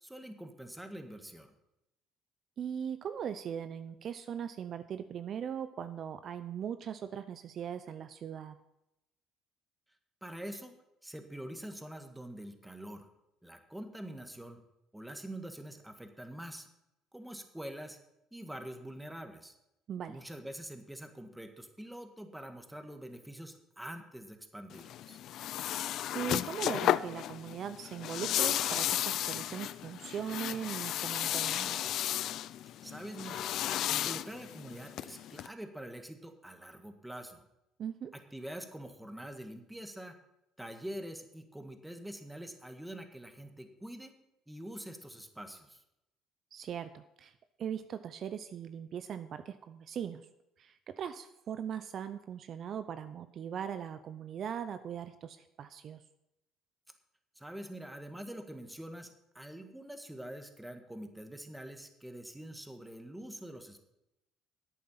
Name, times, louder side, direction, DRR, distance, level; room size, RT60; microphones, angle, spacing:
voice 1, 0.0-1.5 10.2-10.7 11.0-13.1 13.4-14.6 14.9-16.7 17.1-18.0 18.3-19.5 20.1-25.2 32.8-37.4 38.1-40.2 40.6-44.1 44.5-45.8 57.3-63.8, right 1 dB, 5° right, 6 dB, 1.7 m, -45 dB
voice 2, 2.6-8.6 19.9-20.2 26.1-31.8 37.8-38.1 46.5-50.3 50.6-56.0, right 8 dB, 55° right, 11 dB, 0.6 m, -40 dB
sound 1, 24.7-35.5, left 12 dB, 65° left, 0.4 m, -34 dB
11.0 x 8.4 x 5.8 m, 0.87 s
supercardioid pair, 70°, 0 cm